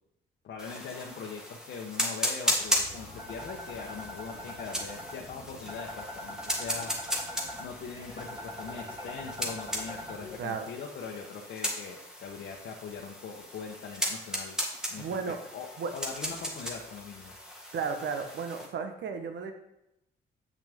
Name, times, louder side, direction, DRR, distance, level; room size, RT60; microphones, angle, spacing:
voice 1, 0.4-6.9 7.6-14.6 14.9-15.7 15.9-17.4, left 5 dB, 65° left, -1 dB, 1.0 m, -41 dB
sound 1, 0.6-18.7, equal, 5° right, 1.7 m, -36 dB
sound 2, 2.6-10.4, left 1 dB, 20° right, 2.6 m, -43 dB
voice 2, 15.0-15.4 15.8-15.9 17.7-19.5, right 5 dB, 65° right, 6 dB, 1.0 m, -33 dB
8.0 x 6.0 x 3.5 m, 0.85 s
cardioid pair, 90°, 20 cm